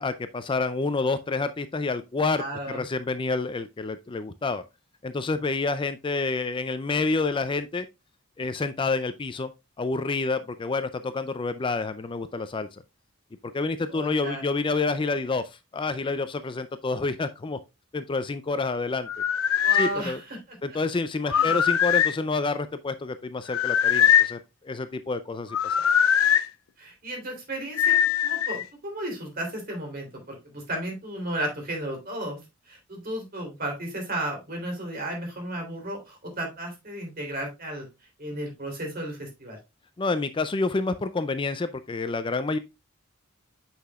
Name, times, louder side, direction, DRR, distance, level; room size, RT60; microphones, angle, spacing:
voice 1, 0.0-4.6 5.0-7.9 8.4-9.5 9.8-12.8 13.5-17.6 17.9-19.1 19.7-20.2 20.6-25.8 40.0-42.6, left 3 dB, 25° left, 0.4 m, -28 dB
voice 2, 2.4-2.8 13.9-14.4 19.6-20.6 21.3-21.7 26.8-32.4 32.7-37.9 38.2-39.6, right 1 dB, 45° right, 3.3 m, -34 dB
sound 1, 19.1-19.9 21.3-22.2 23.5-24.4 25.5-26.5 27.8-28.6, left 9 dB, 90° left, 0.5 m, -21 dB
8.4 x 5.9 x 2.3 m
head